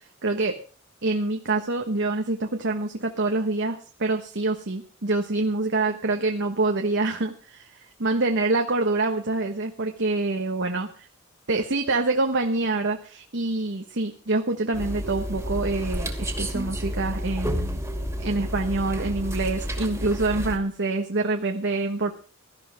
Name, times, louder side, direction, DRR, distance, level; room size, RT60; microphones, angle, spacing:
voice 1, 0.2-0.6 1.0-7.7 8.0-10.9 11.5-17.8 18.2-22.1, right 2 dB, 60° right, 4 dB, 1.3 m, -26 dB
sound 1, 14.7-20.6, equal, 15° right, 2.6 m, -30 dB
17.5 x 13.0 x 3.6 m, 0.38 s
head